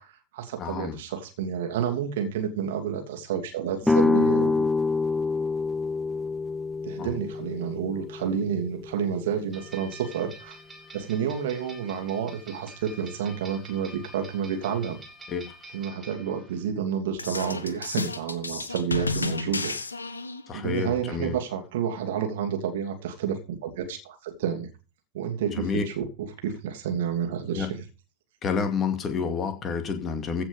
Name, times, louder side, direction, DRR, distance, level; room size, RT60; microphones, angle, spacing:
voice 1, 0.0-4.7 6.8-10.6 10.9-15.0 15.7-19.8 20.5-24.7 25.1-27.8, right 8 dB, 55° right, 5 dB, 2.8 m, -30 dB
voice 2, 0.6-1.0 7.0-7.1 15.3-15.5 20.5-21.3 25.5-25.9 27.5-27.7 28.4-30.4, left 5 dB, 25° left, 7 dB, 2.4 m, -29 dB
sound 1, 3.8-9.6, left 3 dB, 5° left, 0.7 m, -26 dB
sound 2, 9.5-16.6, right 1 dB, 15° right, 3.7 m, -47 dB
sound 3, 17.1-20.6, left 3 dB, 75° left, 1.3 m, -31 dB
15.5 x 5.9 x 5.2 m, 0.32 s
figure-of-eight pair, 90°, 0 cm